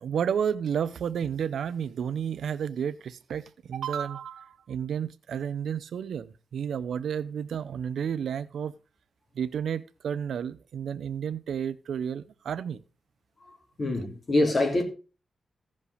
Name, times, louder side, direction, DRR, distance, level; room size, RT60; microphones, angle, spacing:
voice 1, 0.0-8.7 9.3-12.8, right 8 dB, 90° right, 0.6 m, -31 dB
voice 2, 13.5-14.8, left 2 dB, 35° left, 3.5 m, -25 dB
15.5 x 5.4 x 4.9 m
wide cardioid pair, 115°, 0 cm